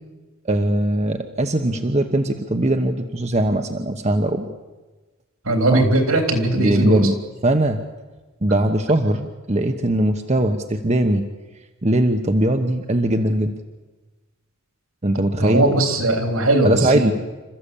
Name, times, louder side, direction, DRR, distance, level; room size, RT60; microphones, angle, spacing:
voice 1, 0.4-4.5 5.7-5.8 6.5-7.1 7.4-7.8 8.4-11.2 11.8-13.5 15.0-15.7 16.6-17.1, right 1 dB, 30° right, 6 dB, 1.0 m, -20 dB
voice 2, 5.5-7.1 15.4-17.1, right 2 dB, 75° right, 5 dB, 3.5 m, -19 dB
27.5 x 14.0 x 8.5 m, 1.2 s
head